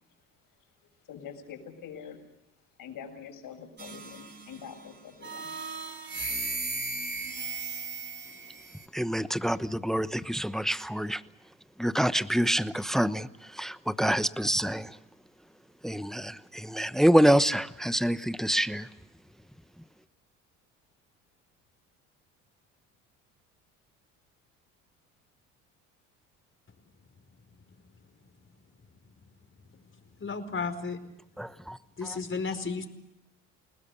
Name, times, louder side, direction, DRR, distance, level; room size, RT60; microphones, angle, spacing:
voice 1, 1.1-2.2 2.8-5.5, left 7 dB, 60° left, 4 dB, 7.5 m, -44 dB
sound 1, 3.8-4.7 5.2-8.9, right 3 dB, 30° right, 7.4 m, -36 dB
voice 2, 8.9-11.2 11.8-13.3 13.5-14.9 15.8-18.9 31.4-31.8, equal, ahead, 14 dB, 1.0 m, -26 dB
voice 3, 30.2-31.0 32.0-32.9, left 4 dB, 30° left, 8 dB, 4.6 m, -33 dB
30.0 x 19.5 x 6.9 m, 0.88 s
hypercardioid pair, 60°, 38 cm